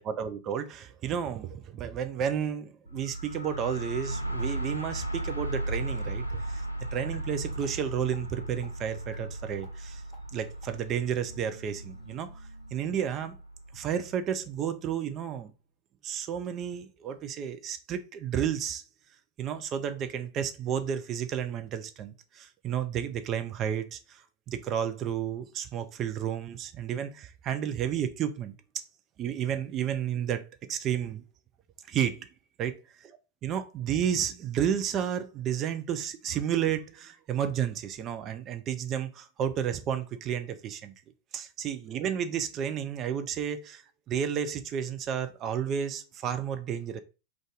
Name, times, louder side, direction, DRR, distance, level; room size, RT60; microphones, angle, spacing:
voice 1, 0.0-6.6 6.9-10.0 10.3-12.3 12.7-13.4 13.7-15.5 16.0-18.8 19.4-24.2 24.5-28.5 29.2-30.4 30.7-31.2 31.9-32.3 32.6-32.7 33.4-40.9 41.3-47.0, right 9 dB, 30° right, 0.4 m, -32 dB
sound 1, 2.9-14.5, right 1 dB, 85° left, 0.3 m, -36 dB
sound 2, 7.1-7.2 7.6-7.7 8.1-8.2 8.6-8.7 9.1-9.2 9.6-9.7 10.1-10.2 10.6-10.7 11.1-12.9, left 1 dB, 5° right, 1.4 m, -54 dB
2.5 x 2.3 x 3.8 m
figure-of-eight pair, 90°, 0 cm